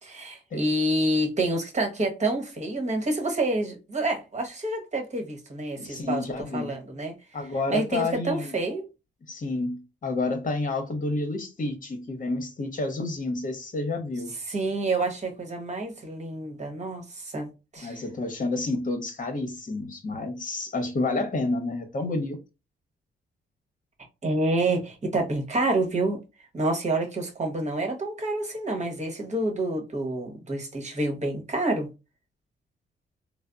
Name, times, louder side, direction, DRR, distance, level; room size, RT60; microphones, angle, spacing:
voice 1, 0.0-7.1 7.7-8.9 14.5-18.0 24.2-26.2 26.5-31.9, right 2 dB, 35° right, 1.0 m, -28 dB
voice 2, 5.8-6.7 7.3-8.5 9.3-14.3 17.8-22.4, left 2 dB, 40° left, 1.0 m, -29 dB
3.4 x 2.0 x 2.4 m
cardioid pair, 60°, 20 cm